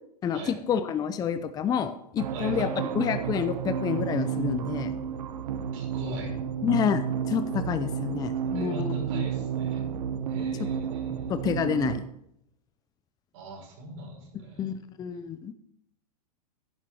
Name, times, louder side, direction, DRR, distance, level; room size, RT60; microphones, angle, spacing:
voice 1, 0.2-4.9 6.6-9.2 11.3-12.0 14.6-15.5, left 7 dB, 20° left, 11 dB, 0.6 m, -29 dB
sound 1, 2.2-12.0, right 8 dB, 80° right, 1.0 m, -31 dB
voice 2, 2.3-2.9 5.7-6.3 8.5-9.8 10.3-11.4 13.3-14.7, right 1 dB, 55° right, 0 dB, 5.8 m, -41 dB
10.5 x 8.9 x 6.2 m, 0.76 s
hypercardioid pair, 135°, 20 cm